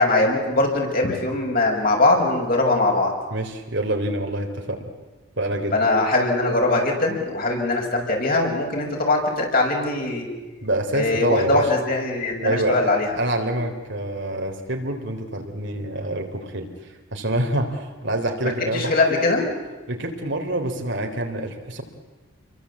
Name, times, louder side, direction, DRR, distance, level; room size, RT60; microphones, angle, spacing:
voice 1, 0.0-3.1 5.7-10.3 10.9-13.1 18.7-19.5, left 2 dB, 40° left, 0 dB, 6.4 m, -21 dB
voice 2, 3.3-4.8 5.4-5.8 10.6-11.6 12.4-18.9 19.9-21.8, right 1 dB, 55° right, 4 dB, 3.6 m, -26 dB
29.5 x 23.0 x 8.5 m, 1.2 s
head